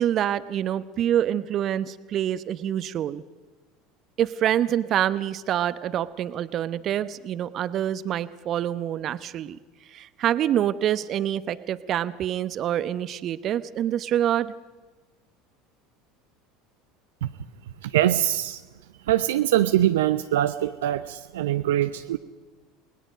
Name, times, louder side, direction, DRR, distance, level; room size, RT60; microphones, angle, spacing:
voice 1, 0.0-3.2 4.2-9.6 9.9-14.5, right 11 dB, 45° right, 15 dB, 0.9 m, -26 dB
voice 2, 17.9-18.6 19.1-22.2, right 13 dB, 70° right, 10 dB, 0.6 m, -23 dB
29.5 x 20.0 x 5.2 m, 1.2 s
figure-of-eight pair, 75°, 0 cm